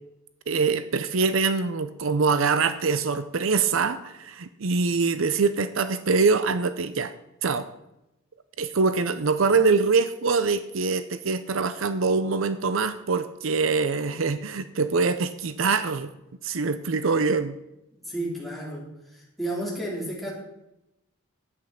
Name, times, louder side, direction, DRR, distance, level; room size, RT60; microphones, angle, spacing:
voice 1, 0.5-7.1 7.4-7.7 8.6-16.1 16.4-17.5, right 4 dB, 65° right, 12 dB, 0.6 m, -24 dB
voice 2, 17.9-20.3, right 1 dB, ahead, -4 dB, 3.5 m, -32 dB
11.0 x 8.9 x 5.8 m, 0.90 s
head